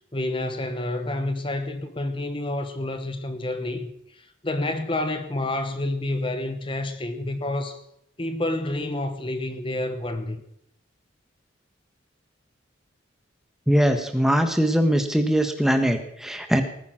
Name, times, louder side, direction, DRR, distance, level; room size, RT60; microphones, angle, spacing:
voice 1, 0.1-7.8 8.2-10.4, left 1 dB, 25° left, 1.1 m, -29 dB
voice 2, 13.7-16.6, equal, ahead, 1.4 m, -21 dB
19.0 x 9.6 x 5.9 m
head